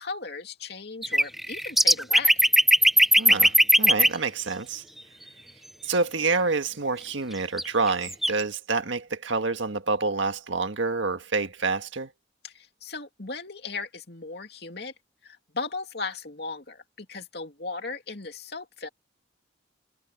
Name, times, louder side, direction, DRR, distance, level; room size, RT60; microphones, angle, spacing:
voice 1, 0.0-2.4 12.4-14.9 15.2-18.9, left 4 dB, 55° left, 2.8 m, -37 dB
sound 1, 1.0-4.1 7.6-7.7 7.9-8.3, equal, ahead, 0.6 m, -18 dB
voice 2, 3.2-4.8 5.8-12.1, right 4 dB, 80° right, 1.7 m, -27 dB
head